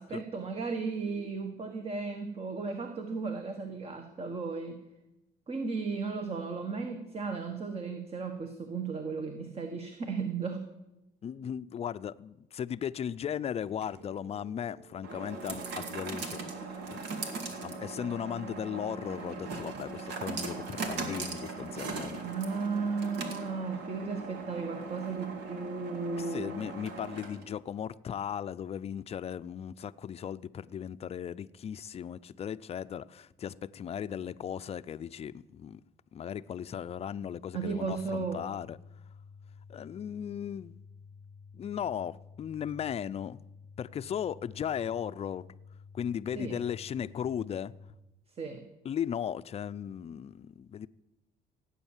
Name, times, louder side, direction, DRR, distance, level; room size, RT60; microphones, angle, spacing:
voice 1, 0.0-4.8 5.5-10.7 22.2-26.5 37.5-38.5 46.3-46.6 48.4-48.6, right 4 dB, 35° right, 1.4 m, -35 dB
voice 2, 11.2-22.2 26.2-35.8 36.1-38.8 39.7-40.8 41.5-43.4 43.8-45.4 45.9-47.7 48.8-50.9, left 8 dB, 40° left, 0.5 m, -37 dB
sound 1, 13.6-27.6, right 4 dB, 85° right, 2.2 m, -39 dB
sound 2, 37.9-47.9, left 5 dB, 10° right, 1.8 m, -52 dB
16.5 x 8.9 x 7.3 m
cardioid pair, 110°, 17 cm